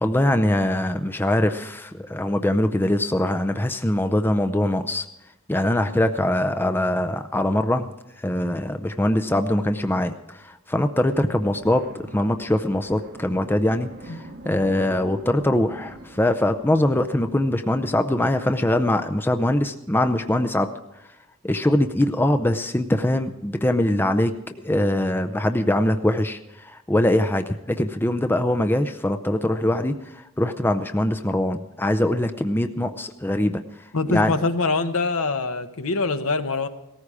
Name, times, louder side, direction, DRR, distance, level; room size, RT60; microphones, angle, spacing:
voice 1, 0.0-5.0 5.5-7.9 8.2-11.9 12.1-20.7 21.4-33.6 34.1-34.3, left 1 dB, 10° left, 8 dB, 0.5 m, -22 dB
sound 1, 11.0-18.4, right 1 dB, 45° right, 1.0 m, -44 dB
voice 2, 33.9-36.7, left 3 dB, 70° left, 8 dB, 1.1 m, -24 dB
18.0 x 14.5 x 4.9 m, 0.87 s
head